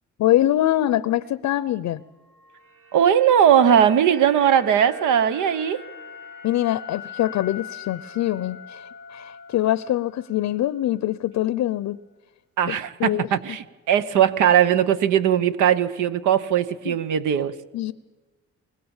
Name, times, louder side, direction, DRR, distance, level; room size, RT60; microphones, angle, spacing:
voice 1, 0.2-2.0 6.4-12.0 12.7-13.3 16.9-17.0 17.7-17.9, left 13 dB, 70° left, 17 dB, 0.6 m, -24 dB
sound 1, 2.3-10.6 10.9-11.1, left 3 dB, 65° right, 5.0 m, -42 dB
voice 2, 2.9-5.8 12.6-17.6, right 9 dB, 80° right, 13 dB, 1.1 m, -19 dB
24.0 x 21.0 x 7.2 m, 1.2 s
cardioid pair, 90°, 30 cm